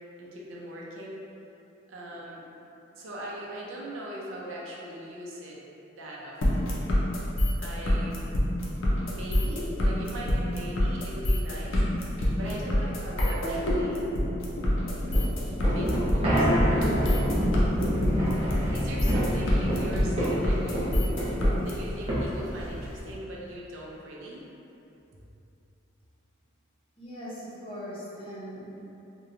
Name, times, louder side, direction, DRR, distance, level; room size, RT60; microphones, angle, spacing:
voice 1, 0.2-1.2 1.9-2.4 2.9-5.6 5.9-6.8 7.6-8.2 9.0-14.0 15.6-16.5 16.7-17.2 17.8-18.2 18.7-21.1 21.5-24.4, right 1 dB, 85° right, -4 dB, 0.5 m, -40 dB
sound 1, 6.4-21.7, equal, 85° left, 0.5 m, -25 dB
sound 2, 15.0-23.1, equal, 30° right, 0.5 m, -27 dB
voice 2, 27.0-28.8, equal, 30° left, -9 dB, 0.6 m, -40 dB
2.8 x 2.1 x 2.4 m, 2.9 s
head